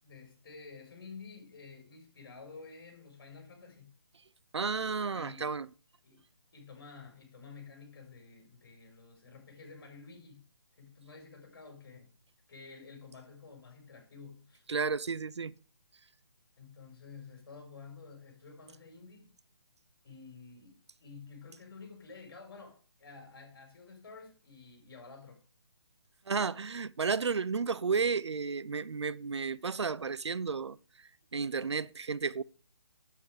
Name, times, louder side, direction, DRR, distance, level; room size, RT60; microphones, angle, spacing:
voice 1, 0.0-4.0 5.1-5.5 6.0-6.2 6.5-10.5 10.7-12.1 12.5-14.7 16.6-19.4 20.0-25.4, left 4 dB, 55° left, 5.5 m, -51 dB
voice 2, 4.5-5.7 14.7-15.5 26.3-30.8 31.3-32.4, right 5 dB, 80° right, 0.6 m, -32 dB
9.3 x 8.3 x 5.0 m
figure-of-eight pair, 155°, 14 cm